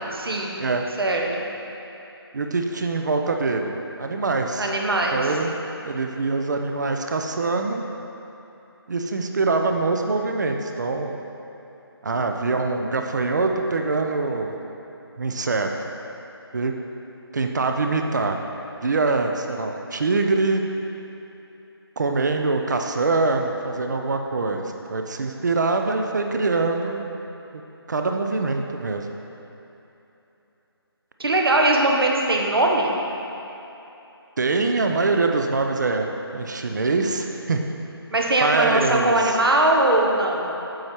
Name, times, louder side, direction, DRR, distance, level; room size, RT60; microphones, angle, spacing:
voice 1, 0.1-0.6 1.0-1.4 4.6-5.2 31.2-33.0 38.1-40.5, right 2 dB, 65° right, 0 dB, 1.1 m, -20 dB
voice 2, 2.3-4.7 5.1-5.5 5.8-7.8 8.9-11.2 12.0-14.6 15.2-15.7 16.5-16.7 17.3-18.4 18.8-20.6 22.0-27.0 27.9-29.1 34.4-37.6 38.4-39.4, right 3 dB, 45° right, 4 dB, 0.6 m, -24 dB
7.7 x 5.2 x 4.4 m, 3.0 s
figure-of-eight pair, 160°, 13 cm